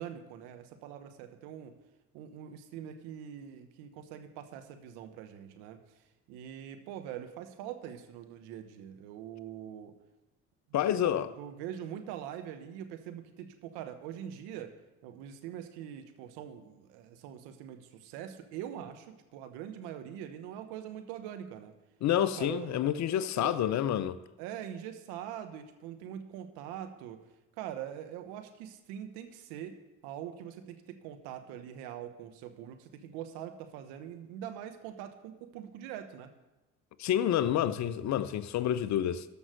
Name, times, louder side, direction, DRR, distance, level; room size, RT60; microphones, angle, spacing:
voice 1, 0.0-1.7 2.1-5.8 6.3-9.9 10.8-14.7 15.0-21.7 22.2-22.8 23.4-24.0 24.4-27.2 27.6-29.8 30.0-36.3, right 10 dB, 65° right, 1.1 m, -43 dB
voice 2, 10.7-11.3 22.0-24.2 37.0-39.3, left 11 dB, 45° left, 0.6 m, -28 dB
13.5 x 5.4 x 6.4 m
figure-of-eight pair, 50°, 41 cm